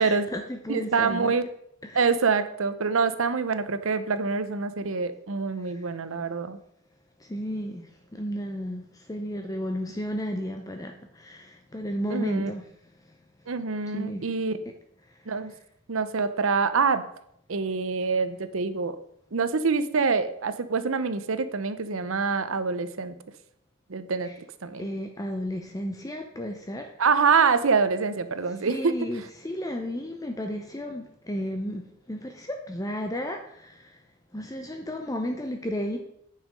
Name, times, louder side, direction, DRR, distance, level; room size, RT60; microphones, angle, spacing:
voice 1, 0.0-1.3 1.8-2.1 7.3-7.9 8.1-8.8 9.1-12.6 13.9-14.2 24.2-24.4 24.8-26.9 28.6-31.8 32.1-33.8 34.3-36.0, equal, 15° left, 4 dB, 0.6 m, -33 dB
voice 2, 0.7-1.4 1.9-6.6 12.1-12.5 13.5-14.5 15.3-15.5 15.9-17.0 17.5-19.0 19.3-23.1 23.9-24.3 24.6-24.9 27.0-28.8, right 5 dB, 65° right, 12 dB, 0.7 m, -25 dB
9.1 x 5.6 x 5.2 m, 0.73 s
head